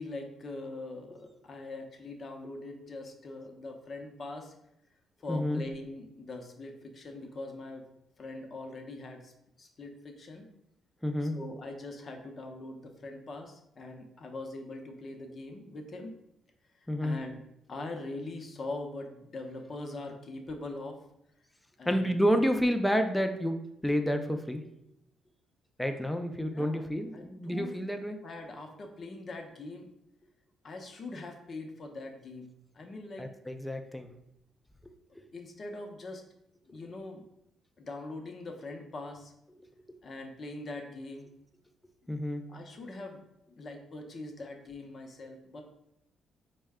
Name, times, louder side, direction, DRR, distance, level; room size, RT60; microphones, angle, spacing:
voice 1, 0.0-4.5 5.2-7.9 8.2-9.3 9.6-10.5 11.2-16.2 16.7-17.4 17.7-21.0 21.8-22.2 26.4-27.8 28.2-29.9 30.6-33.3 35.3-36.2 36.6-37.2 37.8-39.3 40.0-41.3 42.5-43.2 43.6-45.6, left 2 dB, 45° left, 3 dB, 0.7 m, -42 dB
voice 2, 5.3-5.6 11.0-11.3 16.9-17.2 21.9-23.6 23.8-24.6 25.8-28.2 33.2-34.1 35.2-35.3 42.1-42.4, equal, 5° left, 6 dB, 0.4 m, -29 dB
4.4 x 2.2 x 3.5 m, 0.80 s
cardioid pair, 90°, 0 cm